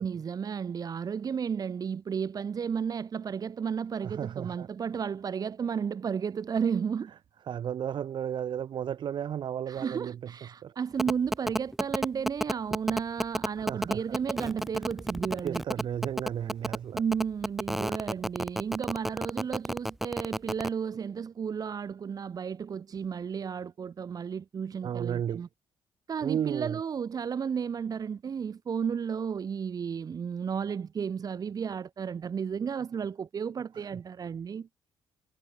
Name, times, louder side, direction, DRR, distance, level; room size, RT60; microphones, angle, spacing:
voice 1, 0.0-7.1 9.7-15.9 16.9-25.5 26.1-34.7, right 7 dB, 45° right, 7.0 m, -33 dB
voice 2, 4.0-4.7 7.5-10.3 10.6-10.7 13.7-14.2 15.4-17.0 17.9-18.0 24.8-25.4 26.2-26.8, right 9 dB, 60° right, 6.3 m, -33 dB
sound 1, 11.0-20.7, equal, 5° right, 3.1 m, -30 dB
cardioid pair, 120°, 9 cm